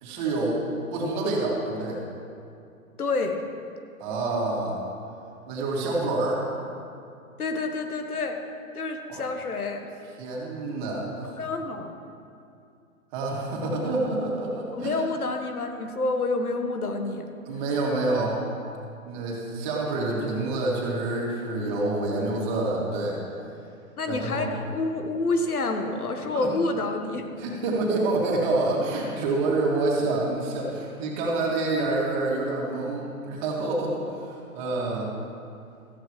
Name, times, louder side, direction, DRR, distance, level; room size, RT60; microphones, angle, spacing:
voice 1, 0.0-0.6 0.9-2.0 4.0-4.8 5.5-6.5 9.1-9.2 10.2-11.3 13.1-15.1 17.5-18.4 19.0-23.2 24.1-24.5 26.3-26.5 27.4-35.1, right 2 dB, 35° right, -3 dB, 2.8 m, -27 dB
voice 2, 3.0-3.4 7.4-8.4 8.7-9.9 11.4-12.0 14.7-17.3 24.0-27.2, left 3 dB, 90° left, 5 dB, 1.6 m, -28 dB
14.5 x 14.5 x 3.3 m, 2.5 s
hypercardioid pair, 140°, 43 cm